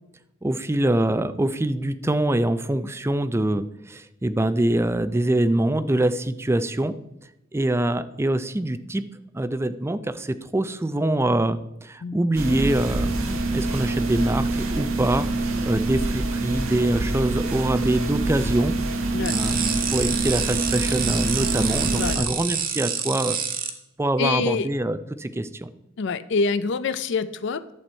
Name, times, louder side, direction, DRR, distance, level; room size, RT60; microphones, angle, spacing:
voice 1, 0.4-6.9 7.5-9.0 9.3-18.7 19.3-23.4 24.0-25.7, right 1 dB, 15° right, 13 dB, 0.4 m, -24 dB
sound 1, 12.3-22.2, right 2 dB, 80° right, 1.2 m, -26 dB
sound 2, 19.3-23.7, right 7 dB, 45° right, 1.2 m, -27 dB
voice 2, 21.9-22.3 24.2-24.7 26.0-27.7, left 4 dB, 60° left, 13 dB, 0.5 m, -26 dB
11.5 x 7.9 x 4.3 m, 0.87 s
head